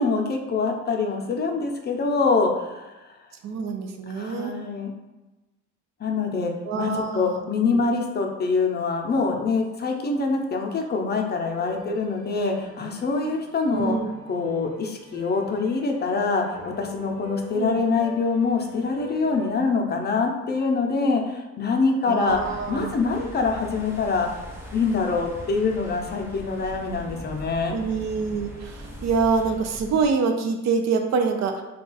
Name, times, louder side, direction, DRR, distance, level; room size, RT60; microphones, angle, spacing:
voice 1, 0.0-3.1 4.1-4.9 6.0-14.0 14.3-24.3 24.7-27.8, left 4 dB, 35° left, 2 dB, 0.5 m, -25 dB
voice 2, 3.4-4.5 6.7-7.4 7.7-7.8 13.7-14.1 17.5-17.9 22.0-22.9 27.7-31.6, right 5 dB, 60° right, 5 dB, 0.4 m, -25 dB
sound 1, 11.4-19.5, equal, 45° right, 1.1 m, -43 dB
sound 2, 22.2-30.1, equal, 10° right, 0.6 m, -40 dB
2.3 x 2.3 x 3.9 m, 1.1 s
cardioid pair, 90°, 30 cm